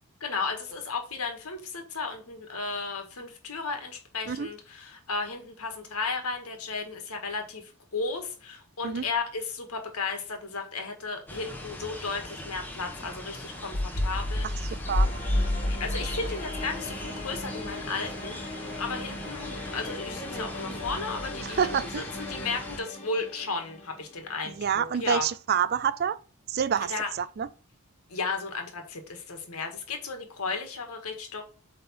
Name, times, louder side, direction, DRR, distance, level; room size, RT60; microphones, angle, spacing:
voice 1, 0.2-14.8 15.8-18.4 18.8-25.3 26.8-27.1 28.1-31.4, left 4 dB, 80° left, 1.7 m, -34 dB
sound 1, 11.3-22.8, left 1 dB, 10° left, 1.1 m, -41 dB
sound 2, 11.8-12.1 13.7-17.8 18.1-18.4 19.2-19.3 20.9-22.0, left 1 dB, 60° left, 1.3 m, -30 dB
voice 2, 14.7-15.1 21.4-22.0 24.4-26.2 26.5-27.5, right 7 dB, 45° right, 0.4 m, -28 dB
sound 3, 14.8-24.8, left 2 dB, 30° left, 1.5 m, -40 dB
7.8 x 3.5 x 4.4 m
head